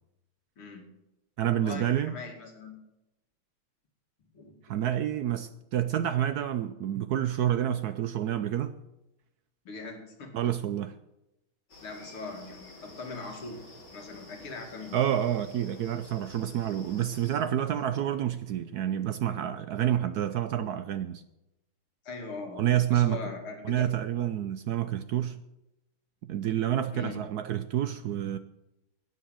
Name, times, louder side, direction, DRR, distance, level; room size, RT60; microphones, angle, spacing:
voice 1, 0.6-0.9 1.5-2.8 4.3-4.5 9.6-10.3 11.8-13.6 13.9-15.0 17.7-17.8 22.0-23.8 26.9-27.2, left 3 dB, 85° left, 3.2 m, -40 dB
voice 2, 1.4-2.1 4.6-8.8 10.3-10.9 14.9-21.2 22.6-23.2 23.6-25.4 26.3-28.4, right 11 dB, 80° right, 0.8 m, -28 dB
sound 1, 11.7-17.4, left 2 dB, 55° left, 4.2 m, -50 dB
12.0 x 9.4 x 7.6 m
omnidirectional pair, 2.3 m